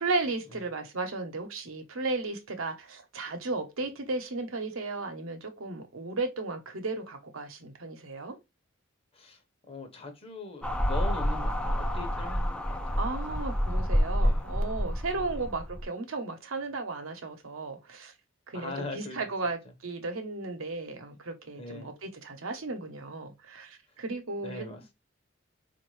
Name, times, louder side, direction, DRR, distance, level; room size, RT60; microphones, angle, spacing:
voice 1, 0.0-8.4 13.0-18.1 18.5-24.7, right 3 dB, 85° right, 0.9 m, -35 dB
voice 2, 9.7-13.4 14.2-14.4 15.1-15.5 18.5-19.2 21.6-21.9 24.4-24.9, left 2 dB, 30° left, 0.9 m, -41 dB
sound 1, 10.6-15.8, equal, 5° left, 0.3 m, -28 dB
4.4 x 2.6 x 3.1 m
head